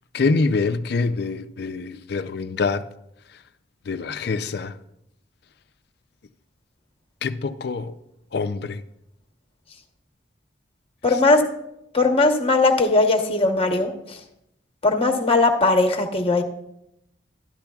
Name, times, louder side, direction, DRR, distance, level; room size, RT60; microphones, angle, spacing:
voice 1, 0.1-2.9 3.9-4.8 7.2-8.0 8.3-8.8, left 4 dB, 55° left, 0.4 m, -25 dB
voice 2, 11.0-11.4 11.9-14.2 14.8-16.4, left 3 dB, 30° left, 1.0 m, -19 dB
12.5 x 11.5 x 2.3 m
head